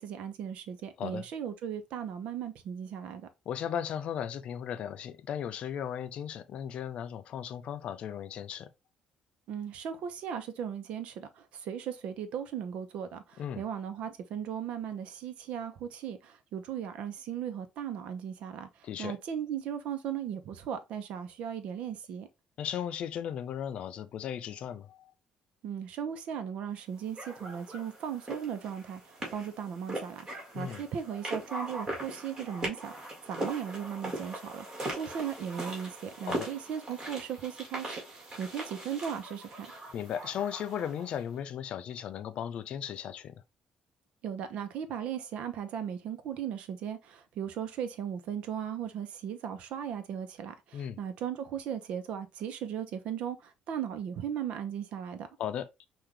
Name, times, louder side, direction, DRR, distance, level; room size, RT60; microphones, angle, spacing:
voice 1, 0.0-3.3 9.5-22.3 25.6-30.3 30.5-39.7 44.2-55.3, right 8 dB, 70° right, 0.8 m, -37 dB
voice 2, 3.5-8.7 13.4-13.6 18.8-19.2 22.6-25.1 30.5-30.8 36.3-36.5 39.9-43.4 50.7-51.0 55.4-55.9, left 9 dB, 60° left, 0.5 m, -36 dB
sound 1, 27.2-41.2, right 1 dB, 30° right, 2.0 m, -40 dB
5.8 x 2.5 x 3.2 m
cardioid pair, 105°, 2 cm